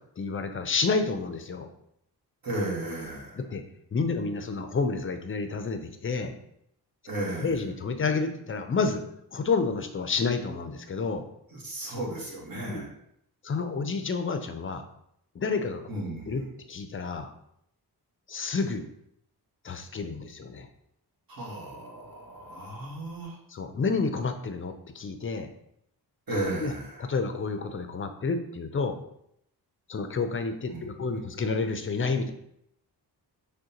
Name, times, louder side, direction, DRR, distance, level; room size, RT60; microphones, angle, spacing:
voice 1, 0.2-1.7 3.3-3.6 3.9-6.3 7.3-9.0 9.3-11.2 12.7-12.8 13.4-14.8 15.3-15.8 16.3-16.4 16.7-17.3 18.3-18.9 19.6-20.7 23.5-25.5 26.6-26.7 27.0-29.0 29.9-32.3, left 4 dB, 30° left, 7 dB, 0.5 m, -29 dB
voice 2, 2.4-3.4 7.1-7.6 11.5-12.9 15.9-16.4 21.3-23.4 26.3-27.0 30.6-30.9, right 1 dB, 55° right, -4 dB, 1.6 m, -34 dB
6.2 x 2.2 x 2.9 m, 0.75 s
cardioid pair, 80°, 41 cm